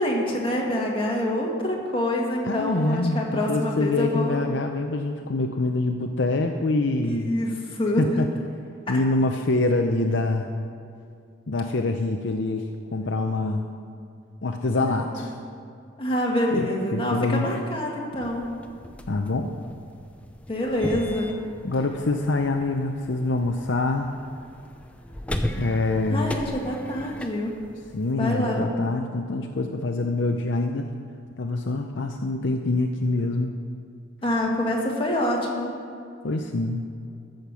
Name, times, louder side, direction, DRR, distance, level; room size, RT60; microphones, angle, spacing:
voice 1, 0.0-4.4 7.0-8.1 14.8-15.0 16.0-18.4 20.5-21.3 26.1-27.5 28.2-28.7 34.2-35.7, left 1 dB, 25° left, -2 dB, 1.9 m, -26 dB
voice 2, 2.4-7.3 8.0-8.3 8.9-10.5 11.5-13.7 14.4-15.3 16.5-17.6 19.1-19.5 21.6-24.1 25.6-26.4 27.9-30.9 31.4-33.6 36.2-36.9, left 2 dB, 60° left, 4 dB, 0.6 m, -25 dB
sound 1, 18.2-28.2, left 1 dB, 5° left, 0.6 m, -37 dB
14.0 x 6.6 x 6.9 m, 2.4 s
head